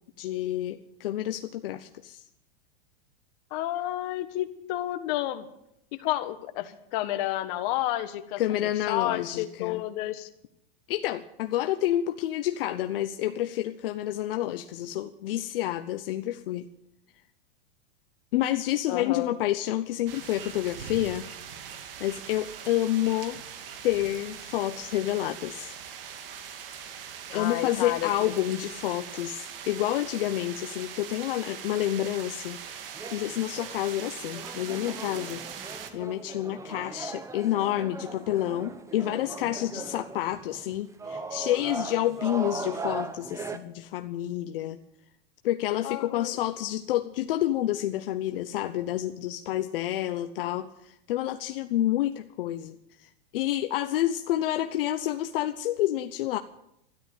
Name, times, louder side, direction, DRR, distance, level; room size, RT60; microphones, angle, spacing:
voice 1, 0.2-2.2 8.4-9.8 10.9-16.7 18.3-21.3 22.0-23.4 23.8-25.7 27.3-32.6 33.1-35.4 35.9-44.8 45.4-56.4, left 13 dB, 70° left, 8 dB, 1.0 m, -29 dB
voice 2, 3.5-5.5 6.0-10.3 18.9-19.3 27.3-28.3 45.8-46.4, left 14 dB, 50° left, 9 dB, 1.6 m, -31 dB
sound 1, 20.1-35.9, right 8 dB, 70° right, 2.3 m, -41 dB
sound 2, 32.7-43.6, right 3 dB, 10° right, 1.0 m, -39 dB
13.5 x 11.5 x 9.2 m, 0.79 s
supercardioid pair, 135°, 29 cm